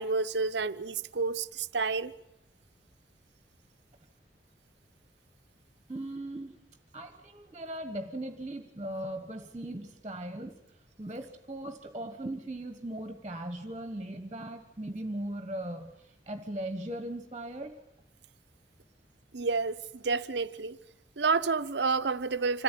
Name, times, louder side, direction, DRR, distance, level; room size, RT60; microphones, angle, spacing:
voice 1, 0.0-2.1 19.3-20.8 21.2-22.6, right 4 dB, 75° right, 0.8 m, -29 dB
voice 2, 5.9-6.5 6.9-10.5 11.0-17.8, right 1 dB, 25° right, 1.4 m, -38 dB
26.5 x 15.0 x 9.2 m
head